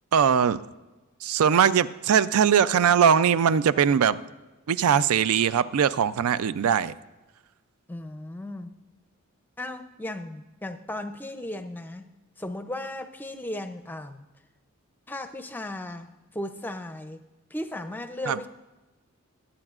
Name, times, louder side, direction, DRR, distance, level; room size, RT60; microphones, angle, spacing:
voice 1, 0.1-0.6 1.2-4.2 4.7-6.9 18.3-18.4, right 7 dB, 90° right, 16 dB, 0.4 m, -21 dB
voice 2, 7.9-8.7 9.6-12.1 12.4-14.2 15.1-16.1 16.3-17.2 17.5-18.5, left 1 dB, 10° left, 9 dB, 0.5 m, -36 dB
21.0 x 8.8 x 2.4 m, 1.1 s
head